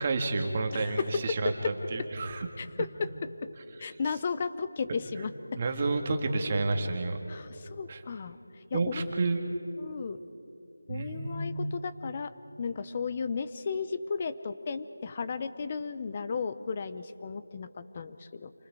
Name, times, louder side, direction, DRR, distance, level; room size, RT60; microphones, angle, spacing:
voice 1, 0.0-2.5 5.6-7.2 7.9-8.0 8.7-9.5 10.9-11.5, right 3 dB, 25° right, 4 dB, 1.7 m, -30 dB
voice 2, 0.7-1.7 2.6-3.1 3.4-3.5 3.8-5.6 7.3-9.0 9.8-10.2 10.9-12.3 12.6-18.5, left 5 dB, 25° left, 12 dB, 0.7 m, -34 dB
29.0 x 24.5 x 4.8 m, 2.9 s
figure-of-eight pair, 170°, 0 cm